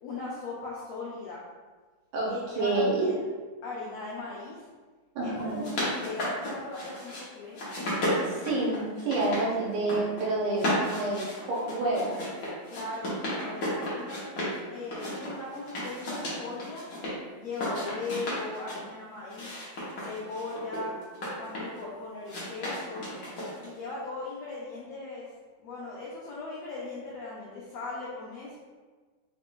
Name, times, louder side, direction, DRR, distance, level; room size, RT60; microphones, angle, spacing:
voice 1, 0.0-1.4 2.3-3.3 3.6-4.7 5.2-7.6 12.7-14.2 14.7-16.8 17.4-19.5 20.0-20.9 21.4-23.0 23.6-25.3 25.6-28.5, left 3 dB, 85° left, -6 dB, 1.4 m, -38 dB
voice 2, 2.1-3.1 5.2-5.6 8.2-12.2, right 2 dB, 75° right, -4 dB, 2.2 m, -29 dB
sound 1, 5.4-7.2 7.5-9.4 9.7-10.2 10.5-14.6 14.9-17.1 17.5-18.8 19.3-21.8 22.3-23.8, left 1 dB, 65° left, 1.1 m, -33 dB
5.1 x 2.5 x 3.6 m, 1.4 s
omnidirectional pair, 3.9 m